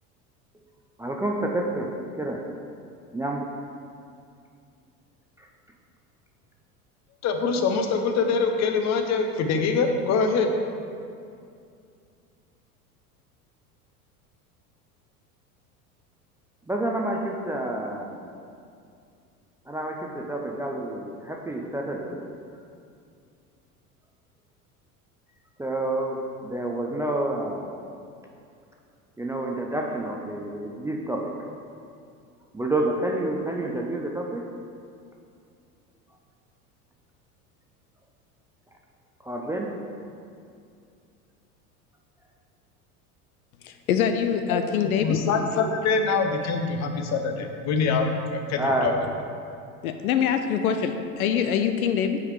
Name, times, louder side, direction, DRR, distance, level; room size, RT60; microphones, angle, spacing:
voice 1, 1.0-2.5 3.1-3.5 5.4-5.5 16.7-18.3 19.7-22.3 25.6-27.8 29.2-31.3 32.5-34.4 39.2-39.7 48.6-48.9, right 1 dB, 5° right, 0 dB, 0.5 m, -29 dB
voice 2, 7.2-10.5 44.5-44.6 44.9-48.9, left 4 dB, 35° left, 5 dB, 0.9 m, -24 dB
voice 3, 43.6-45.2 49.8-52.2, left 8 dB, 65° left, 7 dB, 0.6 m, -24 dB
8.5 x 4.9 x 4.9 m, 2.4 s
figure-of-eight pair, 75°, 45 cm